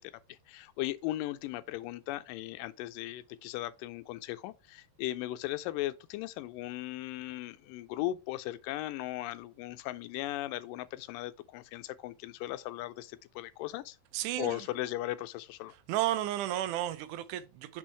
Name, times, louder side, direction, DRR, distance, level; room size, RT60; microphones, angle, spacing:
voice 1, 0.0-14.0 14.4-15.7, left 15 dB, 85° left, 2.2 m, -37 dB
voice 2, 14.1-14.7 15.9-17.8, right 13 dB, 75° right, 2.0 m, -33 dB
6.2 x 4.4 x 4.4 m
omnidirectional pair, 4.0 m